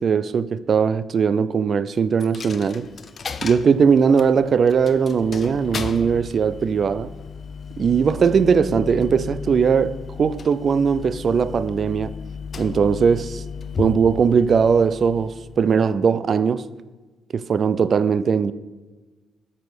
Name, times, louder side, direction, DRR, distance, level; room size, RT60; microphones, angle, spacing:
voice 1, 0.0-2.9 3.4-7.1 7.8-12.1 12.6-13.4 13.8-16.7 17.3-18.5, right 6 dB, 50° right, 0.4 m, -19 dB
Coin (dropping), 2.2-15.9, left 5 dB, 45° left, 0.6 m, -35 dB
7.9 x 5.5 x 6.2 m
cardioid pair, 90°, 0 cm